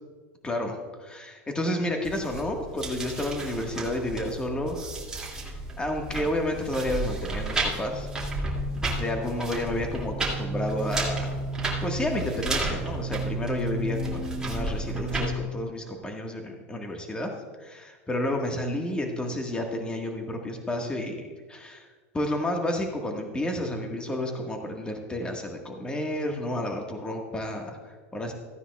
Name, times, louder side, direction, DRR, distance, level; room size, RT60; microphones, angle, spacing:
voice 1, 0.4-4.9 5.4-8.1 9.0-11.3 11.8-21.2 21.5-21.9 22.1-28.3, left 1 dB, 10° left, 2 dB, 1.6 m, -31 dB
sound 1, 2.0-15.3, right 2 dB, 10° right, 2.5 m, -32 dB
15.0 x 9.7 x 2.4 m, 1.4 s
supercardioid pair, 125°, 8 cm